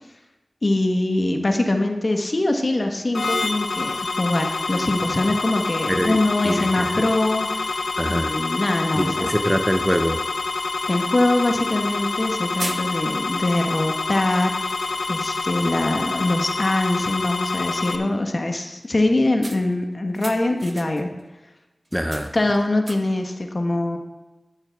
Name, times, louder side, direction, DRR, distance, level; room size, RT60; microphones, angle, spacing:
voice 1, 0.6-7.8 8.1-9.3 10.9-14.5 15.1-21.1 22.3-24.0, left 2 dB, 50° left, 4 dB, 1.3 m, -23 dB
sound 1, 3.1-18.0, left 3 dB, 85° left, 0.6 m, -27 dB
voice 2, 5.9-6.2 6.4-6.9 8.0-8.4 8.9-10.2 21.9-22.3, equal, 5° right, 7 dB, 0.7 m, -23 dB
sound 2, 12.6-13.3 14.0-14.2 14.7-15.5 15.9-16.0 16.3-16.7 19.4-21.2 21.9-23.3, right 2 dB, 50° right, 1.0 m, -38 dB
12.0 x 8.1 x 3.6 m, 1.1 s
cardioid pair, 45°, 0 cm